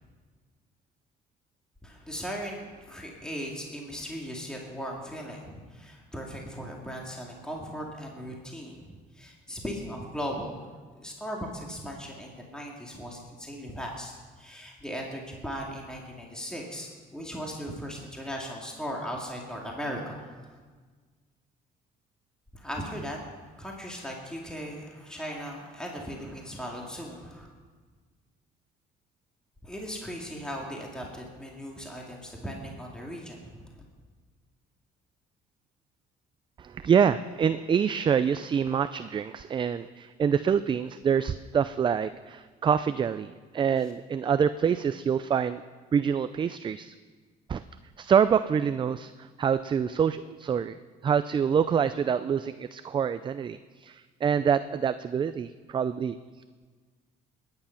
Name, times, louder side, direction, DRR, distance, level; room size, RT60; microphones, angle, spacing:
voice 1, 1.8-10.6 10.9-20.3 22.5-23.3 23.6-27.5 29.6-33.7, equal, 5° left, -1 dB, 2.3 m, -38 dB
voice 2, 36.6-45.6 45.9-46.9 47.5-47.6 48.0-56.2, right 7 dB, 30° right, 12 dB, 0.4 m, -26 dB
20.5 x 9.8 x 5.8 m, 1.5 s
cardioid pair, 110°, 17 cm